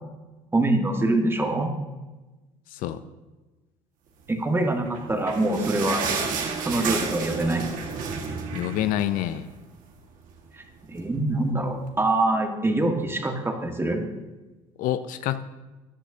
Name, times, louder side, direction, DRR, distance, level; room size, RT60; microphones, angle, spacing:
voice 1, 0.5-1.7 4.3-6.0 6.6-7.6 10.9-14.0, right 2 dB, 15° right, 4 dB, 1.7 m, -24 dB
voice 2, 2.7-3.0 8.5-9.5 14.8-15.4, left 12 dB, 70° left, 12 dB, 0.6 m, -27 dB
sound 1, 4.8-9.6 9.9-10.0 10.3-10.5 11.1-11.2, right 5 dB, 65° right, 1.8 m, -31 dB
14.5 x 10.5 x 2.8 m, 1.2 s
supercardioid pair, 75°, 15 cm